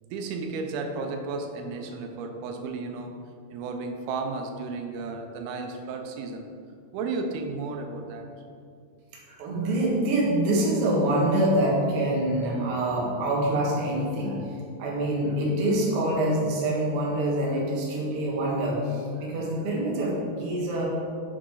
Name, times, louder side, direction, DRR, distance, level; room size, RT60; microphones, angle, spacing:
voice 1, 0.0-3.2 3.5-6.5 6.9-8.3, right 3 dB, 90° right, 5 dB, 2.7 m, -33 dB
voice 2, 9.3-14.5 14.8-20.9, right 1 dB, 55° right, -4 dB, 1.8 m, -25 dB
6.5 x 6.1 x 4.7 m, 2.4 s
omnidirectional pair, 4.4 m